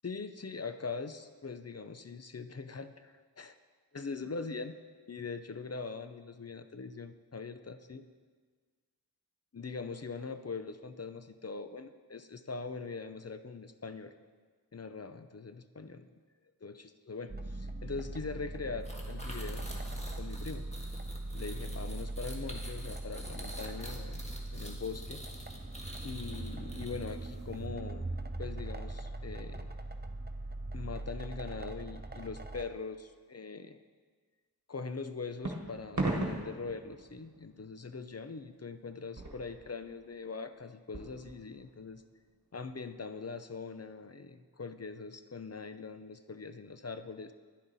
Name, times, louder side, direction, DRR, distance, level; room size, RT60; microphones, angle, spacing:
voice 1, 0.0-3.5 3.9-4.8 5.1-8.1 9.5-14.1 14.7-16.1 16.6-19.7 20.2-20.7 21.3-24.2 24.5-25.2 26.0-28.1 28.4-29.7 30.7-33.8 34.7-42.0 42.5-47.3, left 4 dB, 40° left, 10 dB, 0.5 m, -42 dB
sound 1, 17.3-32.6, right 2 dB, 25° right, 0.7 m, -40 dB
sound 2, 18.8-27.3, equal, 15° left, 1.5 m, -47 dB
sound 3, 35.4-38.0 38.5-38.7 39.0-40.1 40.9-41.8, right 2 dB, 50° right, 1.5 m, -38 dB
10.5 x 9.8 x 4.1 m, 1.5 s
wide cardioid pair, 40°, 38 cm